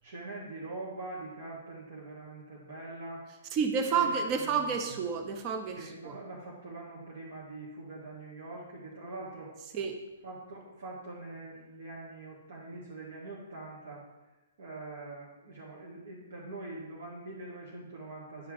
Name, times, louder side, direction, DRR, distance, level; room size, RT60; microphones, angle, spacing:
voice 1, 0.0-3.2 3.9-4.7 5.7-9.5 10.2-14.0 14.6-18.5, right 2 dB, 65° right, -4 dB, 1.8 m, -43 dB
voice 2, 3.5-6.2 9.7-10.0, right 6 dB, 35° right, 6 dB, 0.8 m, -30 dB
10.0 x 4.7 x 3.8 m, 1.1 s
hypercardioid pair, 125°, 0 cm